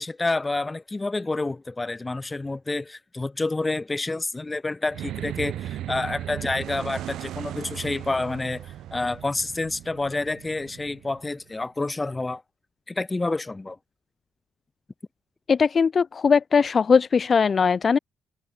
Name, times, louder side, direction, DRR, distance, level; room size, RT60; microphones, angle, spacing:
voice 1, 0.0-12.4 12.9-13.8, left 2 dB, 20° left, 1.4 m, -28 dB
sound 1, 4.9-11.5, right 12 dB, 80° right, 5.2 m, -37 dB
voice 2, 15.5-18.0, left 5 dB, 40° left, 0.5 m, -20 dB
cardioid pair, 90°, 0 cm